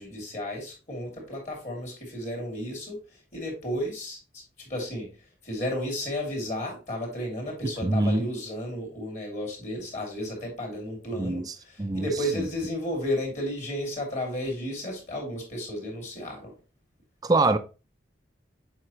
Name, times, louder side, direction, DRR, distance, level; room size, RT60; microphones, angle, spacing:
voice 1, 0.0-4.4 4.7-5.1 5.4-16.5, equal, 40° left, 2.8 m, -33 dB
voice 2, 7.8-8.2 11.2-11.4 11.8-12.1 17.2-17.6, right 2 dB, 20° right, 0.4 m, -23 dB
7.8 x 4.8 x 3.0 m
head